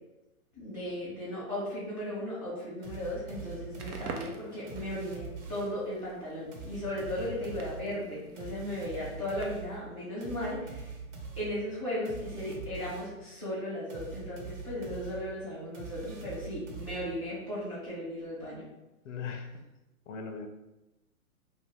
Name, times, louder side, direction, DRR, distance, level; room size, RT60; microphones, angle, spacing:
voice 1, 0.5-10.9 11.4-18.7, left 1 dB, 15° right, -9 dB, 0.3 m, -36 dB
sound 1, 2.8-5.9 6.5-13.3 13.9-17.4, right 4 dB, 60° right, 1.0 m, -44 dB
Crackle, 3.7-9.8, right 4 dB, 80° right, 0.6 m, -48 dB
voice 2, 7.1-7.6 19.0-19.6 20.1-20.5, left 5 dB, 60° left, 5 dB, 0.5 m, -40 dB
2.6 x 2.5 x 3.3 m, 0.98 s
hypercardioid pair, 130°, 44 cm